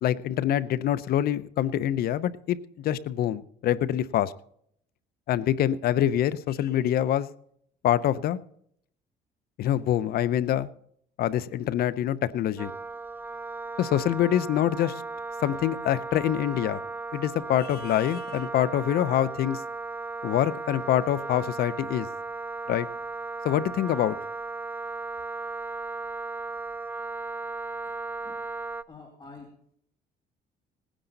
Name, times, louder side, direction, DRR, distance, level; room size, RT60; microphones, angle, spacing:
voice 1, 0.0-4.3 5.3-7.3 7.8-8.4 9.6-10.7 11.2-12.7 13.8-15.0 15.4-16.8 17.1-19.6 20.2-22.1 22.7-22.9 23.4-24.2, left 11 dB, 65° left, 0.8 m, -25 dB
Wind instrument woodwind instrument, 12.6-28.8, right 3 dB, 10° right, 0.4 m, -36 dB
voice 2, 28.9-29.6, left 3 dB, 25° left, 2.5 m, -47 dB
19.0 x 10.0 x 4.0 m
cardioid pair, 110°, 17 cm